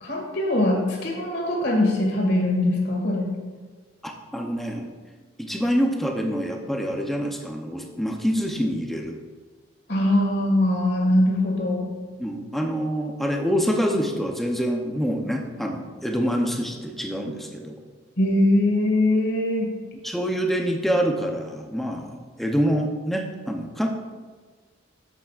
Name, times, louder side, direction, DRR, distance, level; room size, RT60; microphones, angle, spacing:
voice 1, 0.0-3.3 9.9-11.9 18.2-19.7, left 1 dB, 50° left, -1 dB, 2.0 m, -22 dB
voice 2, 4.0-4.8 5.4-9.2 12.2-17.7 20.0-23.9, equal, ahead, 2 dB, 0.7 m, -26 dB
10.5 x 8.2 x 2.5 m, 1.4 s
head